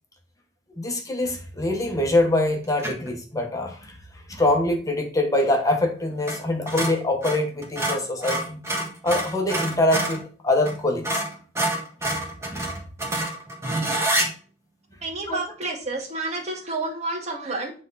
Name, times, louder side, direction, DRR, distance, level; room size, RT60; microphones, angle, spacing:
voice 1, 0.8-3.9 4.3-8.6 9.0-11.2 12.5-12.7 15.3-15.4, left 1 dB, 20° left, 3 dB, 1.3 m, -24 dB
sound 1, 2.8-3.1 6.2-6.4 6.7-10.2 10.6-10.8 11.0-14.3, right 1 dB, 15° right, 1.6 m, -27 dB
voice 2, 15.0-17.7, right 2 dB, 40° right, 0 dB, 1.9 m, -30 dB
9.1 x 3.7 x 4.1 m, 0.39 s
head